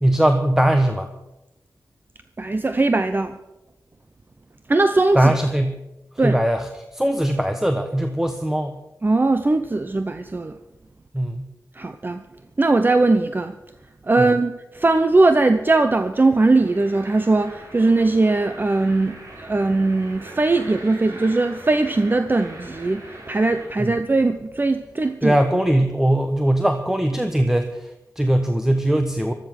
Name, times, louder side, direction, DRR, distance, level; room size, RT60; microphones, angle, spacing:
voice 1, 0.0-1.1 5.1-5.8 6.1-8.8 11.1-11.5 14.2-14.3 23.8-23.9 25.2-29.3, right 1 dB, 5° right, 6 dB, 1.2 m, -20 dB
voice 2, 2.4-3.4 4.7-5.3 6.2-6.4 9.0-10.6 11.8-12.2 12.6-13.5 14.1-25.4, right 2 dB, 30° right, 9 dB, 0.8 m, -20 dB
sound 1, 15.6-23.7, right 1 dB, 55° right, 5.5 m, -42 dB
15.5 x 13.0 x 6.4 m, 0.96 s
wide cardioid pair, 80°, 6 cm